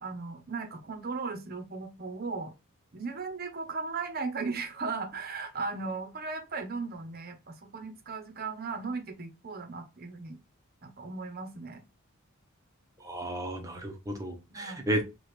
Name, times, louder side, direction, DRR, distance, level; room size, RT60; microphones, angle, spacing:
voice 1, 0.0-2.5 2.9-10.4 10.8-11.8 14.5-14.8, right 4 dB, 45° right, 0.8 m, -37 dB
voice 2, 13.0-15.0, right 1 dB, 15° right, 0.8 m, -33 dB
4.9 x 2.4 x 3.1 m
head